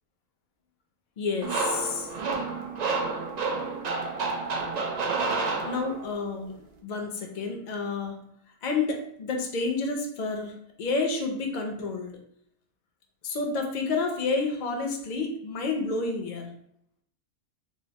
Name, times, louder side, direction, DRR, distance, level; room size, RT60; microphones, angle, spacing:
voice 1, 1.2-2.1 5.6-6.6 6.8-8.3 8.6-12.2 13.2-16.5, left 3 dB, 50° left, 2 dB, 0.5 m, -30 dB
sound 1, 1.4-6.2, right 3 dB, 85° right, 0.3 m, -30 dB
3.0 x 2.0 x 3.9 m, 0.69 s
omnidirectional pair, 1.3 m